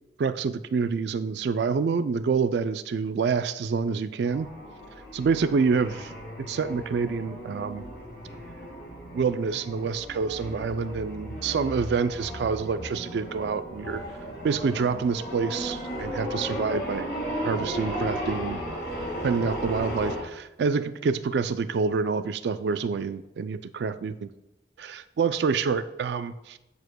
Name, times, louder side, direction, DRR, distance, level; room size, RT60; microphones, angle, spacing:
voice 1, 0.2-4.5 5.1-7.8 9.1-14.0 14.4-17.1 17.4-18.6 19.2-24.3 24.8-26.6, right 5 dB, 75° right, 11 dB, 0.3 m, -27 dB
sound 1, 4.2-20.2, equal, 65° left, 1.8 m, -35 dB
12.5 x 4.9 x 2.2 m, 0.95 s
head